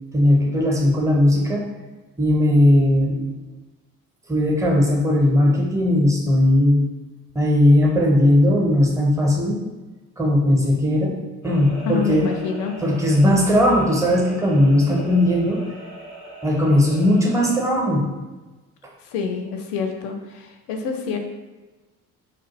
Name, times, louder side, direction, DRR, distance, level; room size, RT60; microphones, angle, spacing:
voice 1, 0.1-1.7 2.2-3.4 4.3-6.8 7.3-9.6 10.2-11.1 11.4-12.3 12.8-15.6 16.4-18.1, left 1 dB, 5° right, -1 dB, 0.5 m, -18 dB
sound 1, 11.4-17.6, equal, 85° left, 0.8 m, -40 dB
voice 2, 11.8-12.8 19.1-21.2, left 5 dB, 50° left, 4 dB, 0.5 m, -27 dB
2.3 x 2.1 x 2.8 m, 1.2 s
figure-of-eight pair, 50°, 44 cm